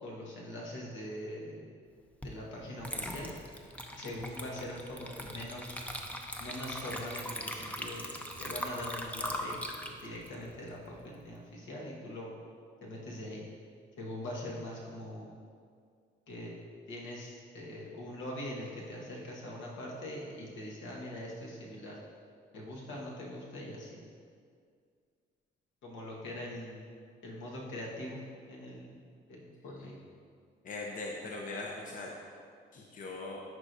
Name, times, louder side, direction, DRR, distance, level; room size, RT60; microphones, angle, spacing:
voice 1, 0.0-1.7 2.2-3.3 4.0-5.7 6.4-8.0 8.4-12.3 12.8-13.4 14.0-15.3 16.3-16.5 16.9-22.0 22.5-24.1 25.8-26.8 27.2-28.2 28.5-29.0 29.3-29.9, left 1 dB, 75° left, -4 dB, 1.5 m, -42 dB
Water / Liquid, 2.2-2.4 2.8-11.3, equal, 5° left, 0.6 m, -40 dB
voice 2, 30.6-32.1 32.7-33.4, left 2 dB, 40° left, -1 dB, 0.7 m, -40 dB
10.5 x 4.8 x 2.7 m, 2.1 s
cardioid pair, 90°, 20 cm